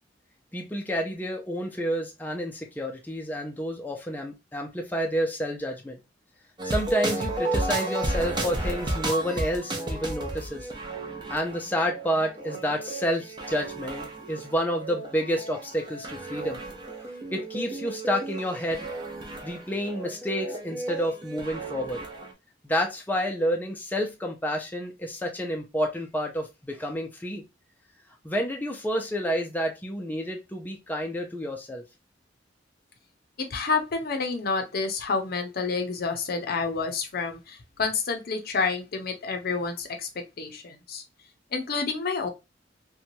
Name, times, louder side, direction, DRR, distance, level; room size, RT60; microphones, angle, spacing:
voice 1, 0.5-6.0 6.6-10.7 11.3-16.6 17.3-18.9 19.4-22.0 22.6-27.4 28.2-31.8, equal, 10° left, 2 dB, 0.4 m, -29 dB
sound 1, 6.6-22.3, right 2 dB, 25° right, 0.7 m, -33 dB
voice 2, 33.4-40.1 40.4-41.0 41.5-42.3, left 4 dB, 55° left, 5 dB, 0.6 m, -29 dB
2.9 x 2.2 x 2.6 m, 0.24 s
head